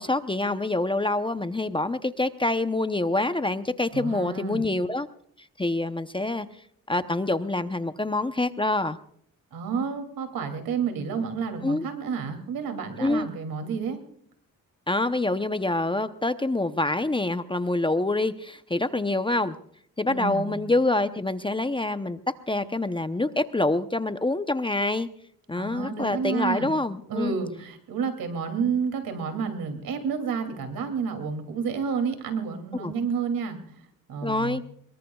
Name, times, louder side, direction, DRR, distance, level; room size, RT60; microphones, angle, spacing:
voice 1, 0.0-5.1 5.6-6.5 6.9-9.0 11.6-11.9 13.0-13.3 14.9-19.5 20.0-22.2 22.5-25.1 25.5-27.4 32.8-32.9 34.2-34.6, left 2 dB, 15° left, 10 dB, 0.8 m, -26 dB
voice 2, 3.9-4.6 9.5-14.0 20.1-20.6 25.5-26.7 27.1-33.6 34.1-34.6, right 6 dB, 90° right, 6 dB, 2.8 m, -30 dB
24.0 x 22.0 x 2.4 m, 0.64 s
cardioid pair, 85°, 34 cm